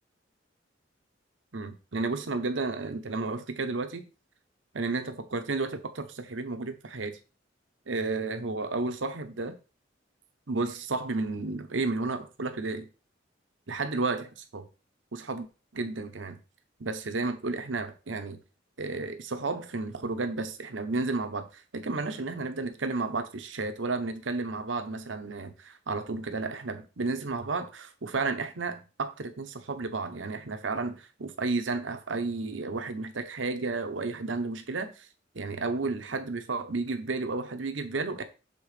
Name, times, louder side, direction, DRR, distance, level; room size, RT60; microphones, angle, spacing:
voice 1, 1.5-4.0 4.7-7.2 7.9-9.5 10.5-12.9 13.7-14.7 15.1-15.5 15.7-16.4 16.8-18.4 18.8-35.1 35.3-38.2, right 3 dB, 80° right, 0.9 m, -32 dB
7.0 x 3.6 x 4.9 m
head